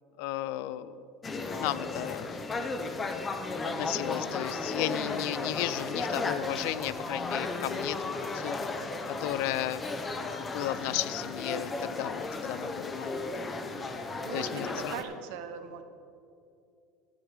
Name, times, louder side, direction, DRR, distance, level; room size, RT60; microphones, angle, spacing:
voice 1, 0.2-1.0 1.6-2.3 3.6-8.6 9.1-9.8 10.1-13.5 14.3-15.0, left 14 dB, 70° left, 17 dB, 0.4 m, -34 dB
sound 1, 1.2-15.0, left 3 dB, 20° left, 0.7 m, -35 dB
voice 2, 14.2-15.8, right 8 dB, 75° right, 8 dB, 1.0 m, -40 dB
12.5 x 4.9 x 8.7 m, 2.5 s
cardioid pair, 155°, 0 cm